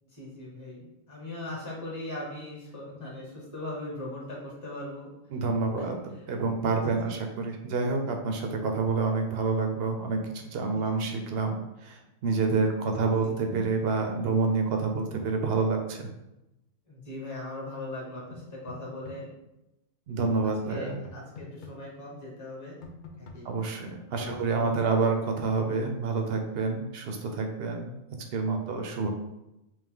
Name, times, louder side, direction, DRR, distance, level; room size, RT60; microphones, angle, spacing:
voice 1, 0.0-5.1 5.8-6.2 7.0-7.1 10.7-10.9 13.0-13.3 16.9-19.3 20.7-22.8 23.2-23.5 24.1-24.7, left 1 dB, 15° left, -4 dB, 1.1 m, -40 dB
voice 2, 5.3-6.0 6.3-16.1 20.1-21.0 23.4-28.0 28.3-29.1, right 4 dB, 60° right, 3 dB, 0.7 m, -28 dB
sound 1, 18.3-19.2 21.0-21.7 22.8-23.4 24.3-24.9, left 4 dB, 70° left, 0.4 m, -44 dB
3.4 x 2.9 x 3.7 m, 0.92 s
omnidirectional pair, 1.4 m